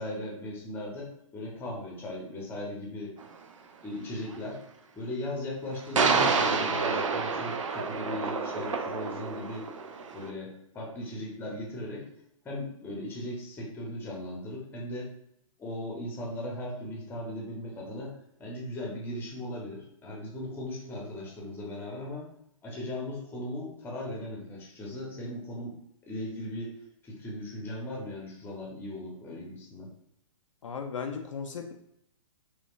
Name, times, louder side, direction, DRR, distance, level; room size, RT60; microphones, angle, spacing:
voice 1, 0.0-3.1 3.8-4.6 4.9-9.7 10.1-12.1 12.4-15.1 15.6-22.3 22.6-25.8 26.1-26.8 27.0-29.9, left 1 dB, 10° left, -2 dB, 0.8 m, -38 dB
sound 1, 3.2-3.3 6.0-10.3, right 5 dB, 65° right, 0.4 m, -28 dB
voice 2, 30.6-31.7, left 6 dB, 65° left, 5 dB, 0.4 m, -36 dB
4.2 x 2.4 x 2.4 m, 0.74 s
figure-of-eight pair, 120°, 17 cm